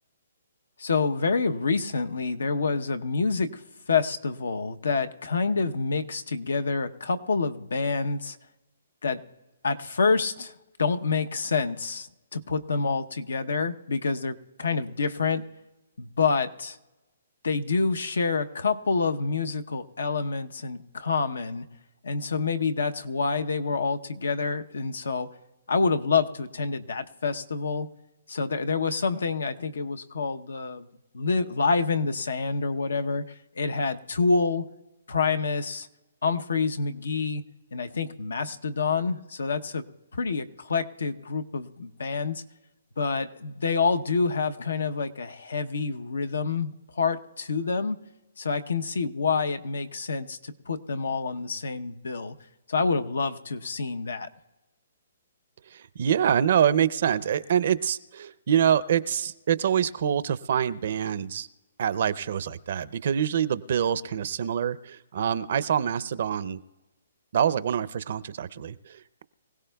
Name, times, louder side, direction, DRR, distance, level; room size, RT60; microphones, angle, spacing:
voice 1, 0.8-3.6 3.9-8.4 9.0-9.2 9.6-10.5 10.8-15.4 16.0-16.8 17.4-21.7 22.0-25.3 25.7-27.9 28.3-30.9 31.1-33.2 33.6-34.6 35.1-35.9 36.2-37.4 37.7-39.8 40.1-42.4 43.0-48.0 48.4-52.3 52.7-54.3, left 4 dB, 85° left, 9 dB, 0.8 m, -27 dB
voice 2, 55.7-61.5 61.8-66.6 67.3-69.2, right 9 dB, 55° right, 16 dB, 0.5 m, -25 dB
24.5 x 16.5 x 2.3 m, 1.1 s
hypercardioid pair, 155°, 0 cm